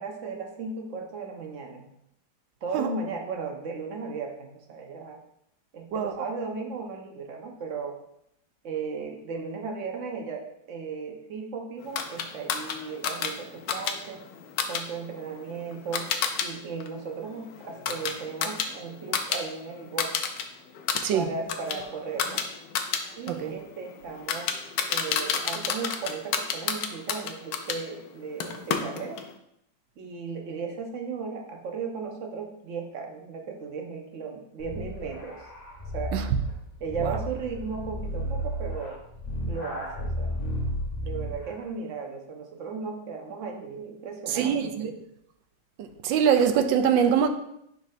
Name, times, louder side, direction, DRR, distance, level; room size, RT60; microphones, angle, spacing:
voice 1, 0.0-1.9 2.6-5.2 5.7-8.0 8.6-14.2 14.7-16.1 16.4-20.1 21.1-22.4 23.2-24.6 24.9-29.2 30.0-35.4 35.9-36.2 36.8-39.0 39.5-40.3 41.0-44.9, right 5 dB, 50° right, 1.0 m, -36 dB
voice 2, 5.9-6.3 21.0-21.3 23.3-23.6 36.1-36.3 37.0-37.2 44.3-44.9 45.8-47.3, right 8 dB, 85° right, 1.3 m, -24 dB
sound 1, 11.9-16.5 16.8-19.4 19.7-20.4 20.7-27.8 28.4-29.3, left 7 dB, 75° left, 1.2 m, -31 dB
sound 2, 34.6-41.5, equal, 30° left, 0.7 m, -33 dB
10.5 x 4.0 x 2.7 m
omnidirectional pair, 2.0 m